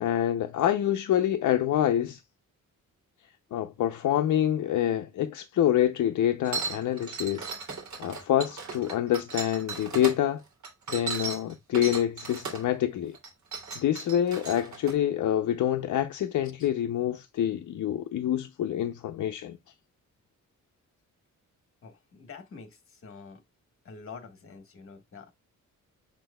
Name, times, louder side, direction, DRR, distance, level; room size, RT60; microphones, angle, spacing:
voice 1, 0.0-2.2 3.5-7.5 8.0-10.4 10.9-13.2 13.8-19.6, left 11 dB, 65° left, 0.6 m, -26 dB
sound 1, 6.4-10.2 10.6-12.7 13.1-14.9, right 5 dB, 60° right, 2.6 m, -36 dB
voice 2, 21.8-23.4 23.8-25.3, left 5 dB, 40° left, 1.5 m, -46 dB
7.1 x 6.1 x 2.2 m
wide cardioid pair, 175°, 32 cm